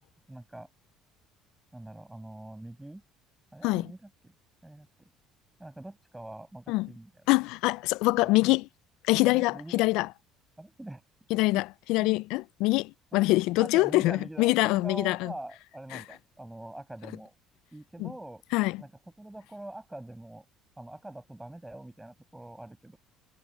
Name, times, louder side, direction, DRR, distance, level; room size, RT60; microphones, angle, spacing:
voice 1, 0.3-0.7 1.7-3.0 3.5-4.3 4.6-5.1 5.6-7.2 8.5-8.6 9.2-10.1 10.6-11.0 12.0-12.2 13.1-13.2 13.6-17.3 17.7-18.4 18.8-18.9 19.2-20.4 20.8-23.0, right 1 dB, 5° right, 7.0 m, -44 dB
voice 2, 7.3-8.6 9.1-10.1 11.3-15.3 15.9-16.0 18.0-18.1 18.5-18.8, left 21 dB, 75° left, 0.3 m, -25 dB
cardioid pair, 110°, 0 cm